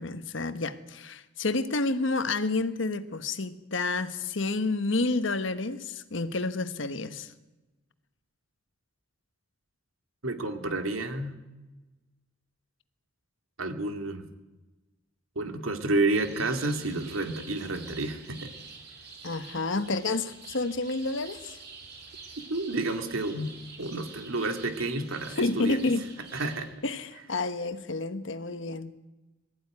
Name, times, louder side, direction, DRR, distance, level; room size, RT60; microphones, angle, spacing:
voice 1, 0.0-7.3 19.2-21.6 25.4-26.1 26.8-29.1, left 3 dB, 65° left, 11 dB, 1.2 m, -30 dB
voice 2, 10.2-11.4 13.6-14.3 15.4-18.5 22.5-23.5 23.8-25.8 26.3-26.7, right 2 dB, 80° right, 6 dB, 2.4 m, -30 dB
sound 1, 16.2-26.7, right 4 dB, 55° right, 5.6 m, -47 dB
21.0 x 14.5 x 9.6 m, 1.1 s
head